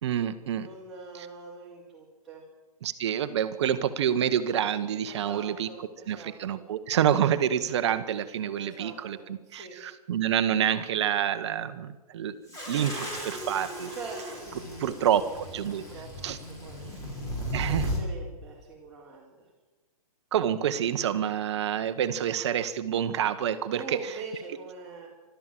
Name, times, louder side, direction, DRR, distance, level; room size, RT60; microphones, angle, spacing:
voice 1, 0.0-0.7 2.8-5.7 6.1-12.3 12.7-13.9 14.8-15.8 16.2-16.4 17.5-17.9 20.3-24.1, right 9 dB, 45° right, 10 dB, 1.2 m, -27 dB
voice 2, 0.6-2.4 5.0-6.6 8.5-9.8 13.9-19.5 23.7-25.1, right 4 dB, ahead, -10 dB, 4.1 m, -44 dB
sound 1, 12.5-18.0, equal, 15° left, 6.2 m, -35 dB
30.0 x 13.0 x 7.6 m, 1.2 s
hypercardioid pair, 155°, 20 cm